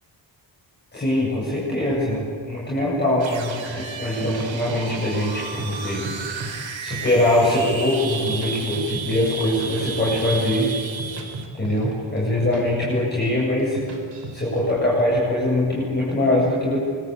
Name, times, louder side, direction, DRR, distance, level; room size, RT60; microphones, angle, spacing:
voice 1, 0.9-6.5 6.8-10.7 11.5-13.8 14.3-16.8, left 1 dB, 25° left, -6 dB, 7.9 m, -22 dB
sound 1, 3.2-11.5, right 5 dB, 85° right, 3.4 m, -33 dB
sound 2, 3.7-5.1 5.4-6.5 6.8-7.8 8.1-9.9 10.1-10.5 10.8-12.6 12.9-13.3 13.6-14.7, right 2 dB, 65° right, 5.2 m, -35 dB
25.5 x 24.5 x 8.4 m, 2.1 s
wide cardioid pair, 150°, 44 cm